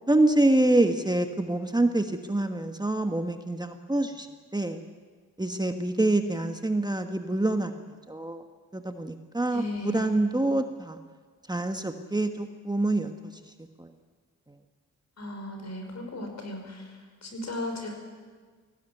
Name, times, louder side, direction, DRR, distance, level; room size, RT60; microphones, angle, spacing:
voice 1, 0.1-4.3 4.5-4.8 5.4-7.7 8.1-8.4 8.7-9.6 9.9-11.0 11.5-13.3 13.8-13.9, right 2 dB, 15° right, 6 dB, 1.4 m, -26 dB
voice 2, 9.5-10.1 15.2-17.9, left 1 dB, 55° left, 4 dB, 5.5 m, -36 dB
19.0 x 16.0 x 9.4 m, 1.5 s
cardioid pair, 60°, 32 cm